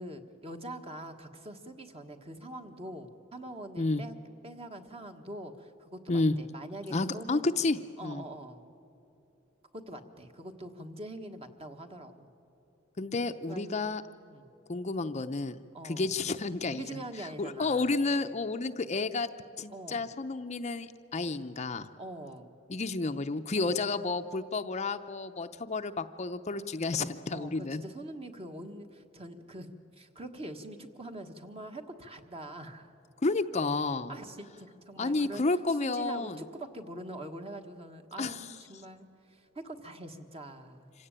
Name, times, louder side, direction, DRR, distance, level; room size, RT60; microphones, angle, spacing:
voice 1, 0.0-4.2 4.4-7.4 8.0-8.6 9.7-12.3 13.5-13.9 14.2-14.5 15.7-16.1 16.7-18.0 19.7-20.1 22.0-22.5 23.6-23.8 27.3-32.9 34.1-35.4 35.7-40.9, right 1 dB, 30° right, 6 dB, 1.5 m, -44 dB
voice 2, 6.9-8.2 13.0-14.0 14.7-17.0 17.4-21.9 22.7-27.8 33.2-34.1 35.0-36.4 38.2-38.4, left 3 dB, 35° left, 9 dB, 0.6 m, -31 dB
26.0 x 16.5 x 8.9 m, 2.9 s
head